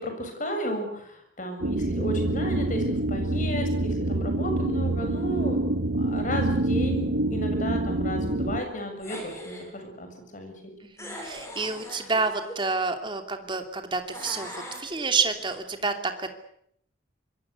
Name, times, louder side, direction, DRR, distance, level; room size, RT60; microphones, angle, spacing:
voice 1, 0.0-5.7 5.9-10.1 10.3-10.5, right 1 dB, 40° left, 5 dB, 7.3 m, -33 dB
sound 1, 1.6-8.6, right 1 dB, 75° right, 1.4 m, -26 dB
sound 2, 9.0-9.7 11.0-12.6 14.1-15.5, left 1 dB, 15° left, 7.2 m, -41 dB
voice 2, 10.8-16.4, right 4 dB, 25° right, 6 dB, 2.9 m, -29 dB
26.0 x 22.5 x 8.2 m, 0.70 s
head